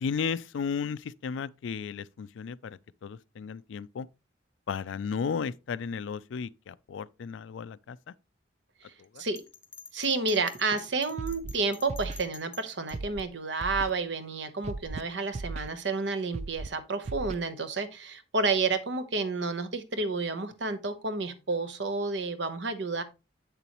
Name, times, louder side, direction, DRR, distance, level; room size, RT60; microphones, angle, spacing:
voice 1, 0.0-4.1 4.7-8.0 9.1-9.2, left 6 dB, 80° left, 0.4 m, -34 dB
Bell, 9.4-13.0, left 5 dB, 15° left, 0.7 m, -48 dB
voice 2, 9.9-23.0, right 3 dB, 70° right, 1.0 m, -30 dB
Scratching (performance technique), 11.2-11.5 11.9-12.2 12.9-13.2 13.6-13.9 14.6-15.0 15.3-15.7 16.3-16.7 17.1-17.4, right 3 dB, 35° right, 0.3 m, -36 dB
7.9 x 6.8 x 3.0 m
head